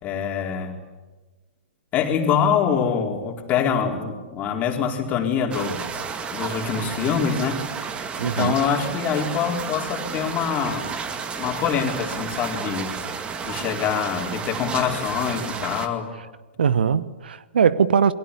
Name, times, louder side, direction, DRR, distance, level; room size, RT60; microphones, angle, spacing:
voice 1, 0.0-0.8 1.9-5.8 6.3-7.7 8.2-10.9 11.4-13.0 13.4-16.1, left 7 dB, 25° left, 4.4 m, -25 dB
sound 1, 5.5-15.9, right 6 dB, 20° right, 2.2 m, -32 dB
voice 2, 8.2-8.6 16.6-18.1, right 7 dB, 65° right, 1.1 m, -20 dB
29.0 x 22.5 x 8.5 m
figure-of-eight pair, 115°, 6 cm